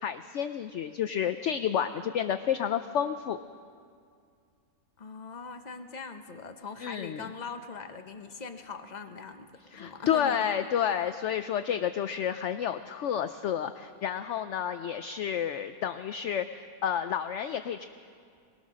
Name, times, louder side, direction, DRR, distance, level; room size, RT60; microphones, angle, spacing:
voice 1, 0.0-3.4 6.8-7.2 9.7-17.8, left 9 dB, 60° left, 10 dB, 0.8 m, -30 dB
voice 2, 5.0-10.5, left 4 dB, 30° left, 7 dB, 1.0 m, -41 dB
20.5 x 20.5 x 6.3 m, 2.3 s
omnidirectional pair, 1.6 m